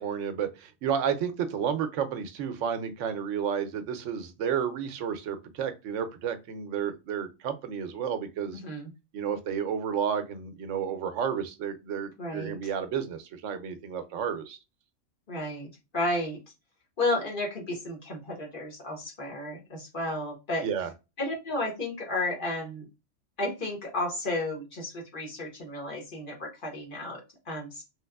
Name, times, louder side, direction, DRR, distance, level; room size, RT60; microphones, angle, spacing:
voice 1, 0.0-8.6 9.1-14.6 20.6-20.9, right 8 dB, 90° right, 10 dB, 1.0 m, -31 dB
voice 2, 8.5-8.9 12.2-12.7 15.3-16.4 17.0-20.7 21.2-22.9 23.4-27.9, left 2 dB, 45° left, -1 dB, 1.3 m, -33 dB
3.2 x 2.8 x 2.3 m, 0.26 s
omnidirectional pair, 1.3 m